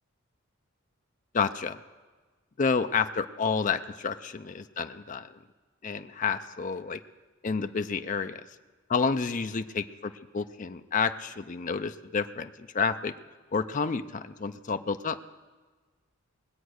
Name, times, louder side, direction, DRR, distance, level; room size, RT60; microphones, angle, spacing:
voice 1, 1.3-1.8 2.6-5.3 5.8-7.0 7.4-8.5 8.9-13.1 13.5-15.2, left 5 dB, 35° left, 8 dB, 0.5 m, -30 dB
20.0 x 8.1 x 6.4 m, 1.4 s
head